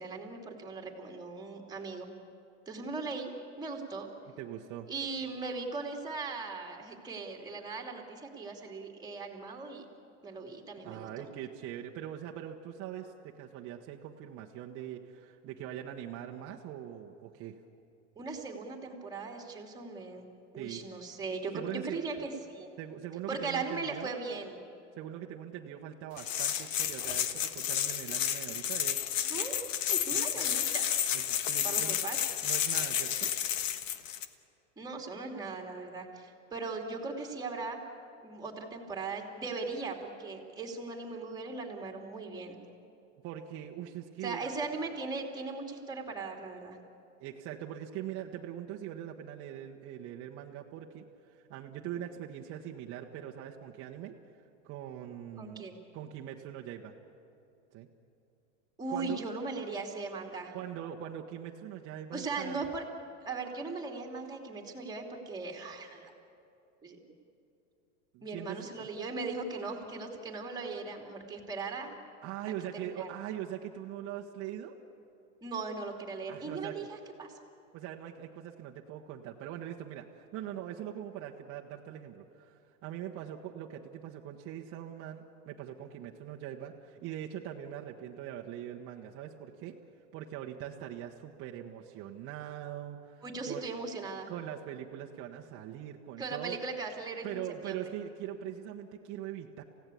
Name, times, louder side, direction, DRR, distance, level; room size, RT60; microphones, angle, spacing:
voice 1, 0.0-2.1 2.7-3.3 3.6-4.1 4.9-9.9 10.2-11.1 18.2-20.3 20.5-22.7 23.3-24.6 29.2-29.6 29.9-31.0 31.6-32.2 34.8-37.8 38.2-42.6 44.2-46.8 55.4-55.8 58.8-60.5 62.1-62.8 63.2-66.1 66.8-67.0 68.2-72.0 72.7-73.1 75.4-77.3 93.2-94.3 96.2-97.9, right 4 dB, 10° right, 1 dB, 2.7 m, -38 dB
voice 2, 4.4-4.9 10.8-17.6 20.6-20.8 21.5-22.0 22.8-24.1 25.0-29.1 30.1-30.5 31.1-32.0 32.4-33.3 43.2-44.5 47.2-54.1 54.6-55.6 55.9-56.9 57.7-57.9 58.9-59.2 60.5-62.7 68.1-68.9 72.2-74.7 76.3-76.9 77.7-89.8 90.1-93.7 94.3-96.6 97.2-99.6, right 11 dB, 35° right, 0 dB, 1.2 m, -42 dB
sound 1, 26.2-34.3, left 9 dB, 85° left, 1.4 m, -31 dB
28.0 x 16.5 x 8.5 m, 2.7 s
supercardioid pair, 140°, 38 cm